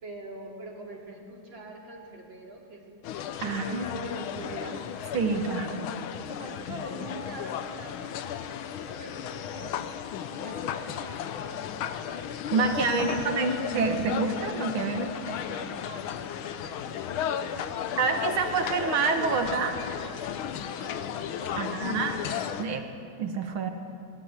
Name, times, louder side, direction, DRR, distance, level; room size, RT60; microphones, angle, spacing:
voice 1, 0.0-3.0 3.4-9.8 10.3-12.2 12.6-13.5 15.1-18.1 20.7-21.9, right 2 dB, 65° right, 0 dB, 3.6 m, -44 dB
sound 1, 3.0-22.6, left 9 dB, 90° left, 1.7 m, -34 dB
voice 2, 3.4-3.9 5.1-5.8 12.5-15.1 18.0-19.8 21.6-22.2 22.6-22.8 23.2-23.7, right 4 dB, 85° right, 5 dB, 2.5 m, -27 dB
20.0 x 20.0 x 8.2 m, 2.6 s
omnidirectional pair, 2.2 m